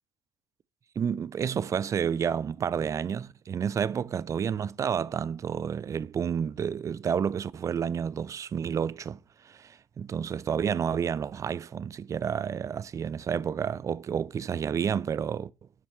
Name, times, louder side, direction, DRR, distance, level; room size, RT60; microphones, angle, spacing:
voice 1, 1.0-15.5, right 7 dB, 30° right, 0.4 m, -30 dB
7.1 x 5.2 x 3.1 m
supercardioid pair, 80°, 10 cm